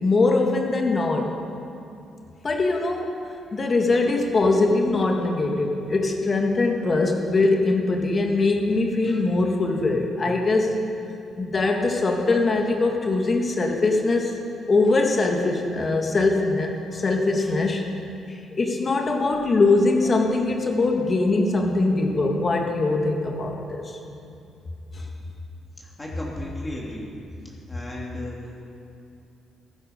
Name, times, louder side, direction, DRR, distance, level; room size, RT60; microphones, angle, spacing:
voice 1, 0.0-1.3 2.4-3.1 3.5-10.7 11.4-14.4 14.7-17.8 18.3-24.0 24.9-25.1, left 3 dB, 35° left, 2 dB, 1.9 m, -22 dB
voice 2, 25.8-27.0 27.7-28.6, left 1 dB, 15° left, -4 dB, 3.0 m, -35 dB
15.0 x 12.0 x 5.2 m, 2.6 s
cardioid pair, 90°, 0 cm